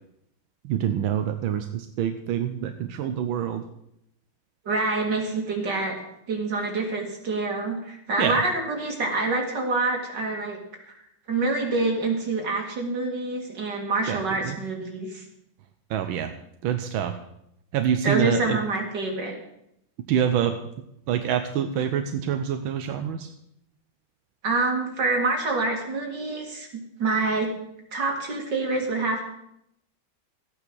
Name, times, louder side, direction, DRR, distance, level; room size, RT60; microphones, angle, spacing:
voice 1, 0.6-3.7 8.2-8.3 14.1-14.6 15.9-16.3 16.6-17.2 17.7-18.6 20.1-20.6 21.1-23.3, right 9 dB, 90° right, 7 dB, 1.6 m, -26 dB
voice 2, 4.6-6.0 6.3-10.6 10.9-11.0 11.3-15.2 18.0-19.4 24.4-26.7 27.0-27.5 27.9-29.3, right 3 dB, 60° right, 1 dB, 3.2 m, -26 dB
15.0 x 8.9 x 6.2 m, 0.78 s
omnidirectional pair, 2.1 m